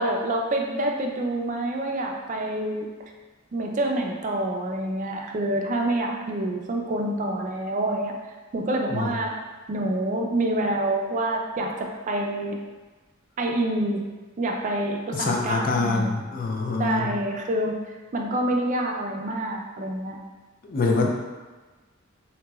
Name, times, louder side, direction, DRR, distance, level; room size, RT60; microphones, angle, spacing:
voice 1, 0.0-2.9 3.5-8.1 8.5-9.3 9.7-12.6 13.4-14.0 14.4-16.2 16.8-17.8 18.1-20.2, right 1 dB, 35° right, 1 dB, 0.4 m, -27 dB
voice 2, 15.1-17.1 20.6-21.2, left 3 dB, 40° left, 1 dB, 0.4 m, -25 dB
3.9 x 2.9 x 2.3 m, 1.3 s
head